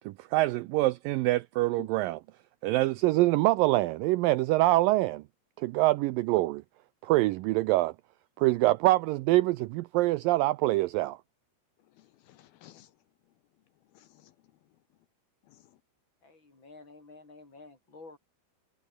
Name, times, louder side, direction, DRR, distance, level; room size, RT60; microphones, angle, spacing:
voice 1, 0.1-2.2 2.6-5.2 5.6-6.6 7.0-7.9 8.4-11.2, right 18 dB, 85° right, 2.0 m, -25 dB
voice 2, 11.8-13.0 13.8-14.5 15.4-15.8, left 14 dB, 75° left, 2.8 m, -54 dB
voice 3, 16.2-18.2, left 3 dB, 30° left, 6.0 m, -51 dB
omnidirectional pair, 4.6 m